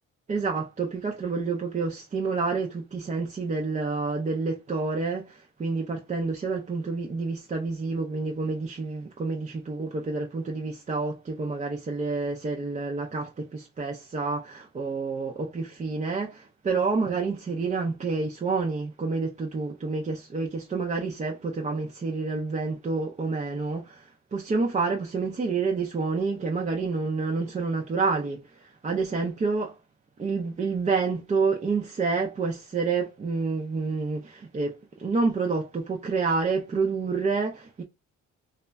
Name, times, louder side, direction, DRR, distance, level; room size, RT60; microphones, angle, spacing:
voice 1, 0.3-29.8 30.2-37.8, right 4 dB, 25° right, 0.4 m, -28 dB
2.2 x 2.0 x 3.5 m
cardioid pair, 90°, 30 cm